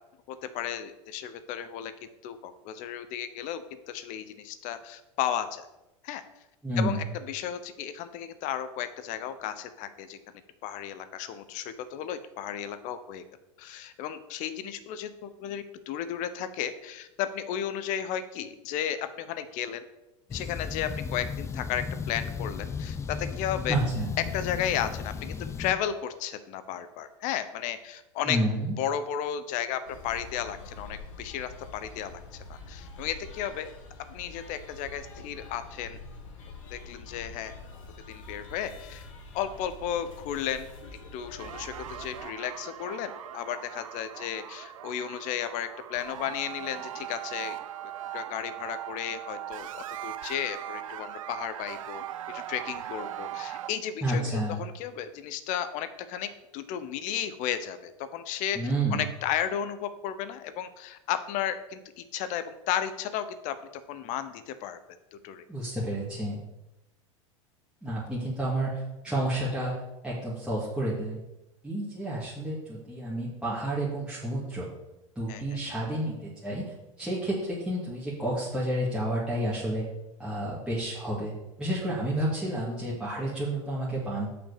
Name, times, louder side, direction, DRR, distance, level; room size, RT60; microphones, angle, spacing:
voice 1, 0.3-1.9 2.2-5.7 6.0-6.2 6.8-10.2 10.6-13.2 13.6-19.8 20.3-23.8 24.3-28.4 28.8-33.7 34.1-36.0 36.7-37.5 38.1-39.1 39.3-40.7 41.1-47.6 48.1-58.6 58.9-63.6 63.9-64.8 65.1-65.4 75.3-75.4, left 9 dB, 50° left, 11 dB, 0.7 m, -34 dB
voice 2, 6.6-7.0 23.7-24.1 28.3-28.7 54.0-54.6 58.5-59.0 65.5-66.4 67.8-69.8 70.0-71.2 71.6-74.7 75.2-76.6 77.0-79.8 80.2-81.3 81.6-84.3, right 1 dB, 5° right, -8 dB, 2.1 m, -30 dB
sound 1, 20.3-25.7, left 6 dB, 15° left, 0.4 m, -35 dB
sound 2, 29.9-42.2, left 3 dB, 80° left, 1.5 m, -46 dB
sound 3, 41.4-53.7, right 12 dB, 85° right, 0.6 m, -40 dB
5.9 x 5.1 x 6.6 m, 0.96 s
hypercardioid pair, 105°, 17 cm